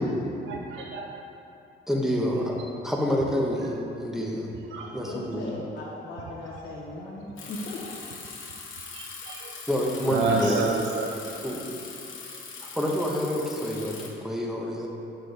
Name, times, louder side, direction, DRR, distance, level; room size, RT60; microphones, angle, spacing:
voice 1, 0.5-1.1 4.7-4.9 8.9-9.5 10.1-11.1, right 3 dB, 70° right, 0 dB, 0.6 m, -28 dB
voice 2, 1.9-4.5 4.9-5.4 9.7-10.8 11.4-11.6 12.7-14.9, equal, ahead, -2 dB, 1.1 m, -28 dB
voice 3, 5.0-7.8, left 2 dB, 60° left, -7 dB, 1.2 m, -37 dB
Bicycle, 7.4-14.1, left 5 dB, 80° left, 1.2 m, -41 dB
7.4 x 6.0 x 3.4 m, 2.7 s
cardioid pair, 90°, 20 cm